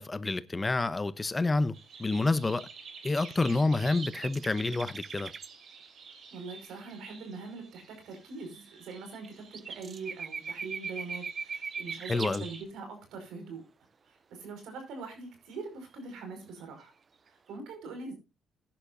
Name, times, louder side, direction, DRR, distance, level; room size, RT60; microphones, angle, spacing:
voice 1, 0.0-2.7 3.0-5.3 12.1-12.4, left 3 dB, 20° left, 0.9 m, -28 dB
sound 1, 1.7-12.6, right 5 dB, 60° right, 3.2 m, -50 dB
sound 2, 3.3-5.5 9.1-9.3 9.5-12.4, right 5 dB, 40° right, 0.5 m, -40 dB
voice 2, 6.3-13.6 14.1-16.9 17.3-18.1, right 4 dB, 85° right, 5.3 m, -43 dB
16.0 x 10.5 x 2.7 m
cardioid pair, 90°, 0 cm